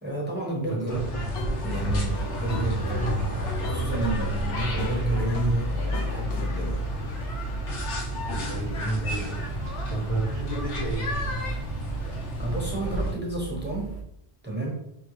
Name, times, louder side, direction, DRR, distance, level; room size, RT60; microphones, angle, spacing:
voice 1, 0.0-1.0 1.6-6.9 12.4-14.0 14.4-14.7, right 2 dB, 10° right, -3 dB, 0.8 m, -30 dB
voice 2, 0.7-1.3 3.0-3.3 8.4-9.4 9.9-11.1, right 2 dB, 40° left, -4 dB, 0.6 m, -31 dB
sound 1, 0.9-13.1, equal, 85° left, 1.1 m, -31 dB
sound 2, 1.3-5.6 5.9-6.4, equal, 65° left, 0.8 m, -33 dB
sound 3, 1.5-14.0, right 6 dB, 45° right, 0.5 m, -38 dB
5.3 x 2.2 x 3.1 m, 0.77 s
omnidirectional pair, 1.1 m